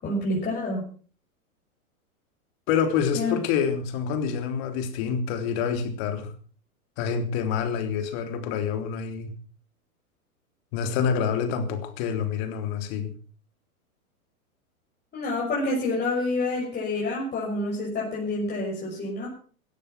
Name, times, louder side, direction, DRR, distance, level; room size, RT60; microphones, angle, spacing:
voice 1, 0.0-0.8 3.1-3.4 15.1-19.3, left 2 dB, 20° left, 6.5 m, -28 dB
voice 2, 2.7-6.3 7.0-9.3 10.7-13.1, left 7 dB, 45° left, 3.6 m, -27 dB
16.5 x 13.5 x 6.0 m
hypercardioid pair, 110°, 44 cm